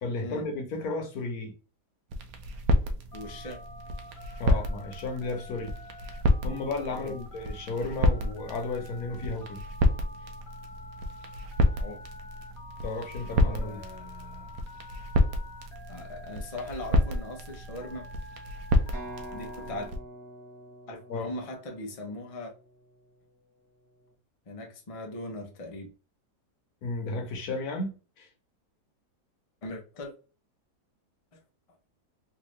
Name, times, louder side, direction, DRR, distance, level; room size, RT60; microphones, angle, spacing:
voice 1, 0.0-1.5 4.4-5.7 6.4-9.6 12.8-13.8 21.1-21.3 26.8-28.3, left 3 dB, 65° left, 1.3 m, -33 dB
sound 1, 2.1-20.0, equal, 80° right, 1.2 m, -30 dB
Telephone, 3.1-19.9, left 2 dB, 85° left, 1.5 m, -48 dB
voice 2, 3.1-3.6 4.5-4.7 6.9-7.2 11.7-12.0 13.4-14.6 15.9-18.1 19.3-19.9 20.9-22.5 24.5-25.9 29.6-30.1, left 2 dB, 45° left, 0.4 m, -40 dB
sound 2, 18.9-22.7, right 1 dB, 40° right, 1.1 m, -45 dB
3.6 x 2.6 x 3.1 m
omnidirectional pair, 1.8 m